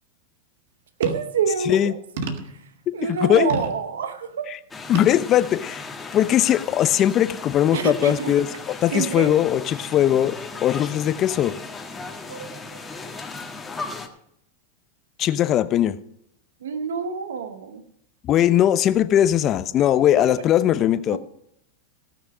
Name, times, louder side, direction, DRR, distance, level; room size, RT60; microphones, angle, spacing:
sound 1, 1.0-1.4 2.2-2.6 3.5-3.8 4.9-5.2 5.9-6.0, right 3 dB, 70° right, 1.6 m, -29 dB
voice 1, 1.0-1.9 2.9-4.5 7.7-8.3 8.9-9.3 12.3-12.9 16.6-17.8 20.1-20.3 21.1-21.2, right 6 dB, 85° right, 9 dB, 1.2 m, -27 dB
voice 2, 2.9-3.5 4.9-8.5 8.8-10.4 10.6-11.6 15.2-16.0 18.2-21.2, left 11 dB, 35° left, 13 dB, 0.7 m, -20 dB
sound 2, 4.7-14.1, left 4 dB, 15° left, 1.5 m, -37 dB
17.5 x 6.3 x 5.1 m, 0.73 s
hypercardioid pair, 115°, 0 cm